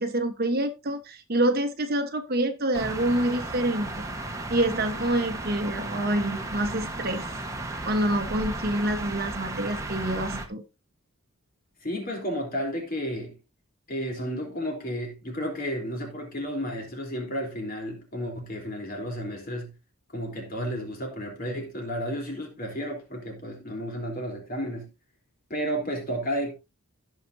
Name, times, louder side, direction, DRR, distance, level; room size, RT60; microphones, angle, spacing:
voice 1, 0.0-4.1 4.5-7.3 7.9-10.6, right 1 dB, 45° right, 1.2 m, -27 dB
sound 1, 2.7-10.5, right 2 dB, 15° right, 1.3 m, -35 dB
voice 2, 11.8-13.4 13.9-19.7 20.1-24.9 25.5-26.5, equal, 40° left, 3.6 m, -32 dB
17.0 x 6.1 x 2.7 m
head